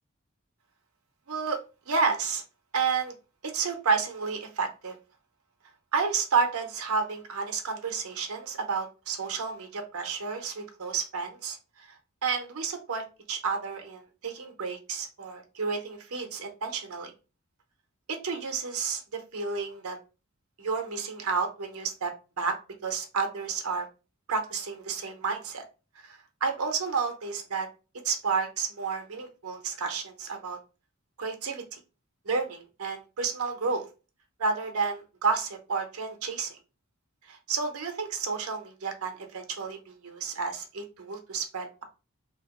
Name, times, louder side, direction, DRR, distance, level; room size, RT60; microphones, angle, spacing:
voice 1, 1.3-1.6 1.9-2.4 2.7-3.1 3.4-5.0 5.9-11.9 12.2-17.1 18.1-20.0 20.6-22.6 22.8-23.9 24.3-25.6 26.0-27.7 28.0-30.6 31.2-31.8 32.3-33.9 34.4-36.6 37.3-41.8, right 5 dB, 80° right, 4 dB, 0.7 m, -31 dB
2.9 x 2.8 x 2.9 m, 0.31 s
head